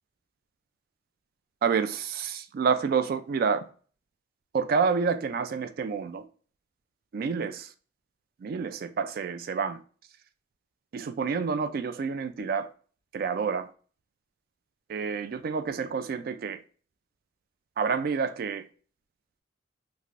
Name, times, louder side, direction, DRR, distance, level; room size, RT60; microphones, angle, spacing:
voice 1, 1.6-3.7 4.5-6.2 7.1-7.7 8.4-9.8 10.9-12.7 13.1-13.7 14.9-16.6 17.8-18.6, right 5 dB, 50° right, 0.3 m, -28 dB
3.2 x 2.5 x 2.4 m
head